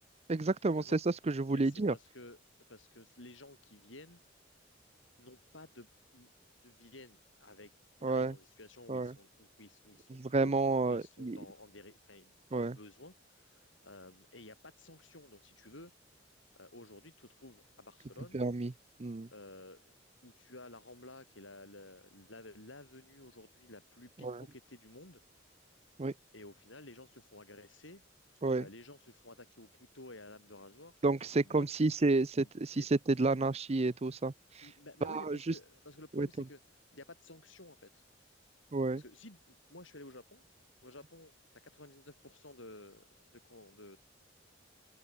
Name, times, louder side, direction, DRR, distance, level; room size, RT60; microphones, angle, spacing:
voice 1, 0.3-1.9 8.0-8.3 8.9-9.1 10.1-11.4 12.5-12.7 18.3-18.7 19.0-19.3 24.2-24.4 26.0-26.1 28.4-28.6 31.0-34.7 35.0-35.5 36.2-36.3 38.7-39.0, right 3 dB, 35° right, 0.6 m, -30 dB
voice 2, 1.5-2.4 2.7-4.2 5.2-6.3 6.6-7.7 8.0-15.9 16.5-18.4 19.3-19.8 20.2-25.2 26.3-28.0 28.3-31.8 32.4-32.9 34.6-36.6 36.9-38.0 38.9-40.4 40.8-43.0 43.3-44.0, left 2 dB, 85° left, 7.9 m, -53 dB
head